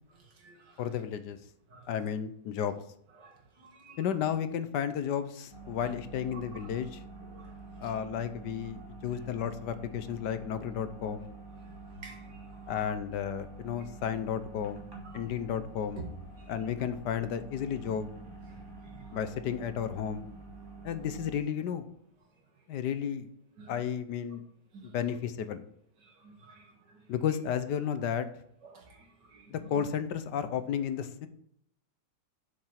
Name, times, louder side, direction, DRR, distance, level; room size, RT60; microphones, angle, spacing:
voice 1, 0.2-0.8 1.7-1.9 3.2-4.1 6.5-6.7 7.2-7.9 8.8-8.9 12.0-12.9 15.0-15.2 16.0-16.1 16.4-16.6 18.8-19.2 23.6-23.8 24.7-24.9 26.0-27.0 28.6-29.8, right 4 dB, 70° right, 2 dB, 2.4 m, -51 dB
voice 2, 0.8-1.4 1.9-2.7 4.0-7.0 7.8-11.3 12.7-14.9 15.1-16.0 16.5-18.1 19.1-20.2 20.8-21.9 22.7-23.3 23.7-24.4 24.8-25.6 27.1-28.3 29.5-31.3, left 8 dB, 75° left, 11 dB, 1.3 m, -33 dB
sound 1, 5.5-21.4, right 3 dB, 10° right, 2.7 m, -47 dB
7.6 x 6.7 x 5.7 m, 0.69 s
omnidirectional pair, 1.9 m